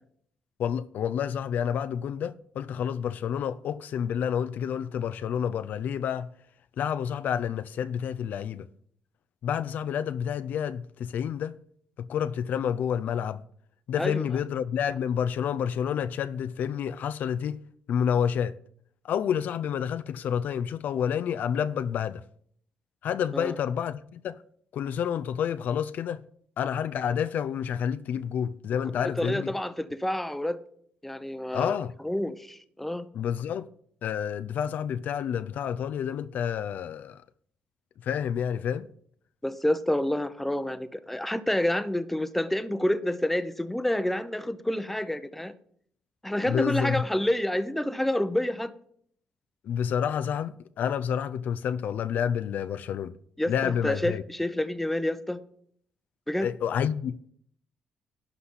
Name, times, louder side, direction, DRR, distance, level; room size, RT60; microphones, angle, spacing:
voice 1, 0.6-6.3 6.8-8.7 9.4-11.6 12.0-13.4 13.9-17.6 17.9-18.6 19.0-22.2 23.0-24.4 24.7-26.2 26.6-29.5 31.5-31.9 33.1-33.7 34.0-37.2 38.0-38.9 46.5-47.0 49.6-53.1 53.5-54.2 56.4-57.3, left 8 dB, 70° left, 0.4 m, -29 dB
voice 2, 29.0-30.6 31.0-31.7 32.0-33.1 39.4-45.5 46.2-48.7 53.4-55.4 56.3-56.5, left 1 dB, 5° left, 0.8 m, -28 dB
11.5 x 4.1 x 7.9 m
cardioid pair, 80°, 3 cm